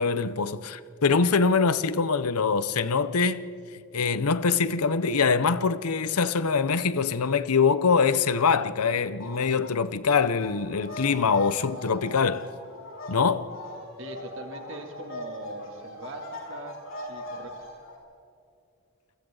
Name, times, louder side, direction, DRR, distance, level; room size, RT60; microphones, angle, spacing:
voice 1, 0.0-3.4 3.9-12.5 13.1-13.5, left 5 dB, 85° left, 0.8 m, -24 dB
sound 1, 9.2-9.7 10.0-18.0, left 1 dB, 65° left, 6.1 m, -41 dB
voice 2, 14.0-17.6, right 2 dB, 60° right, 2.8 m, -41 dB
29.5 x 22.5 x 3.9 m
head